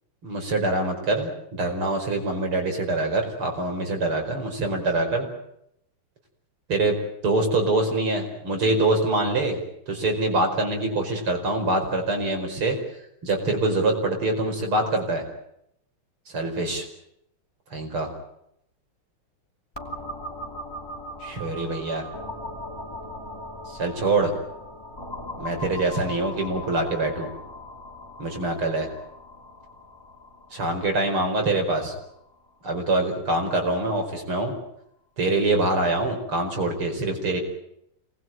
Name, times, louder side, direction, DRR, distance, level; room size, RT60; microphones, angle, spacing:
voice 1, 0.2-5.3 6.7-7.0 7.2-9.6 9.9-12.8 13.2-15.2 16.3-16.9 17.7-18.1 21.2-22.1 23.7-24.3 25.4-27.3 28.2-28.9 30.5-31.9 32.6-34.5 35.2-37.4, right 2 dB, 90° right, 3 dB, 6.0 m, -24 dB
sound 1, 19.8-33.3, left 1 dB, 10° left, 2.7 m, -39 dB
27.0 x 20.5 x 9.1 m, 0.77 s
omnidirectional pair, 2.3 m